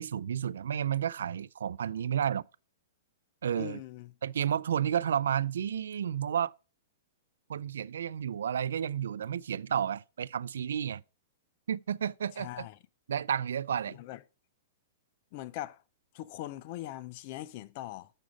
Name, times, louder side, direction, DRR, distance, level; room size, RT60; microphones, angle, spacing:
voice 1, 0.0-2.4 3.4-3.8 4.2-6.5 7.5-11.0 11.7-12.7 13.1-14.0, right 9 dB, 85° right, 0.3 m, -31 dB
voice 2, 3.5-4.1 12.4-12.8 13.9-14.2 15.3-15.8 16.1-18.1, left 15 dB, 45° left, 0.5 m, -41 dB
7.4 x 6.2 x 3.8 m
hypercardioid pair, 140°, 0 cm